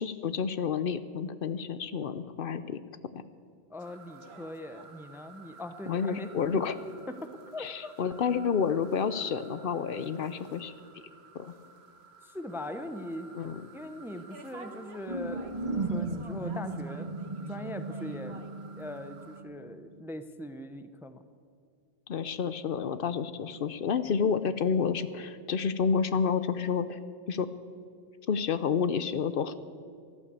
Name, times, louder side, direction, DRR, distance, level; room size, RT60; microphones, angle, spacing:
voice 1, 0.0-2.8 5.9-6.7 7.6-10.7 11.3-11.5 13.3-13.6 22.1-27.0 27.3-27.5 28.3-29.5, left 6 dB, 65° left, 13 dB, 0.8 m, -29 dB
voice 2, 3.7-6.6 7.1-7.9 12.2-13.3 13.7-17.1 17.5-18.4 18.7-21.2, left 1 dB, 5° right, 11 dB, 0.6 m, -41 dB
sound 1, 3.8-19.4, right 4 dB, 90° right, 1.4 m, -52 dB
sound 2, 15.1-19.6, right 2 dB, 40° right, 1.2 m, -36 dB
14.0 x 12.0 x 8.3 m, 2.2 s
omnidirectional pair, 1.0 m